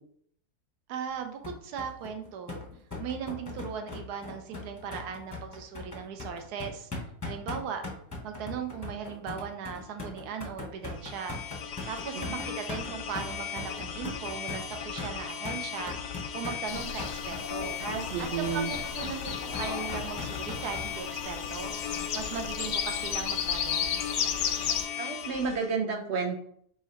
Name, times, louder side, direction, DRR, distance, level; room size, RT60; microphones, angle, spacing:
voice 1, 0.9-2.6 3.0-6.9 7.2-7.8 8.2-11.4 11.9-16.0 16.3-17.8 18.2-21.7 22.1-24.0, right 7 dB, 80° right, 5 dB, 1.2 m, -38 dB
sound 1, 1.4-20.9, left 3 dB, 20° left, 0.6 m, -40 dB
sound 2, 10.9-25.7, left 8 dB, 90° left, 1.2 m, -37 dB
sound 3, 16.7-24.9, left 8 dB, 70° left, 0.7 m, -34 dB
voice 2, 17.8-18.7 24.9-26.4, right 5 dB, 60° right, 2 dB, 0.8 m, -31 dB
3.7 x 3.1 x 4.2 m, 0.64 s
omnidirectional pair, 1.7 m